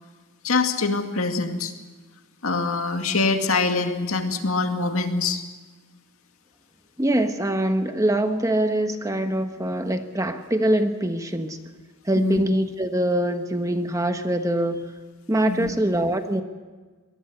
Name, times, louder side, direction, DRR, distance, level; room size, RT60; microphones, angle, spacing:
voice 1, 0.4-1.7 2.4-5.4 12.2-12.4 15.5-15.7, left 3 dB, 75° left, 5 dB, 2.2 m, -24 dB
voice 2, 7.0-11.6 12.1-14.9 15.3-16.4, right 1 dB, 15° right, 7 dB, 1.2 m, -23 dB
23.5 x 19.5 x 6.9 m, 1.4 s
head